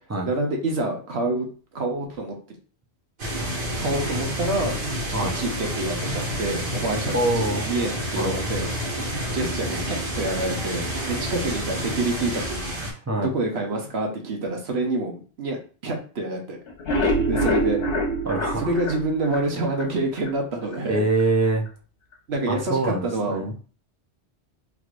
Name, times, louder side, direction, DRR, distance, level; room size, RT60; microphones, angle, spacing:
voice 1, 0.2-1.5 1.7-2.3 3.8-4.7 5.2-8.7 9.3-12.7 13.2-15.6 15.8-16.6 17.3-17.8 18.6-21.0 22.3-23.5, right 2 dB, 70° right, 2 dB, 1.1 m, -27 dB
sound 1, 3.2-12.9, equal, 55° right, 1.3 m, -29 dB
voice 2, 7.1-7.7 8.1-8.3 13.1-13.3 18.3-18.7 20.9-21.7 22.5-23.7, right 2 dB, 20° right, 0 dB, 0.4 m, -24 dB
sound 2, 16.7-19.9 20.3-20.4 20.7-20.8 21.2-21.3, equal, 60° left, 1.1 m, -25 dB
3.6 x 3.1 x 2.4 m, 0.38 s
omnidirectional pair, 1.1 m